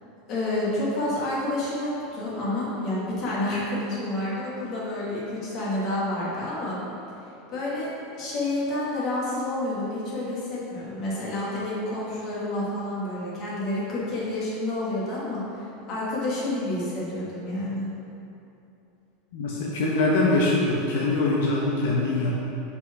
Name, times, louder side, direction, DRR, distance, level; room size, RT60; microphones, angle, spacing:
voice 1, 0.3-6.8 7.5-7.9 8.2-17.9, left 1 dB, 30° left, -7 dB, 1.5 m, -29 dB
voice 2, 19.3-22.4, left 2 dB, 70° left, -3 dB, 0.7 m, -23 dB
5.6 x 4.1 x 4.6 m, 2.8 s
supercardioid pair, 175°, 0 cm